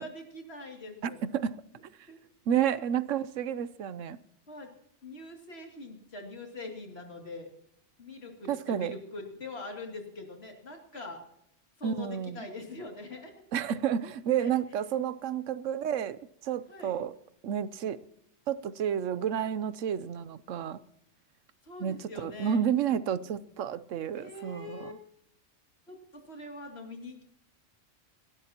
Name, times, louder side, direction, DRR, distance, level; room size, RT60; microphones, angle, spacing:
voice 1, 0.0-1.2 2.1-2.2 2.5-2.7 4.5-4.7 5.0-7.5 8.0-11.2 11.8-13.3 14.4-14.8 16.7-17.0 21.6-22.6 24.2-24.9 25.9-27.2, left 2 dB, 55° left, 2 dB, 3.0 m, -43 dB
voice 2, 1.0-1.5 2.5-4.2 8.5-8.9 11.8-12.4 13.5-16.2 16.4-17.1 17.4-18.0 18.5-20.8 21.8-25.0, right 9 dB, 85° right, 16 dB, 1.1 m, -30 dB
29.5 x 12.0 x 2.9 m, 0.77 s
omnidirectional pair, 1.3 m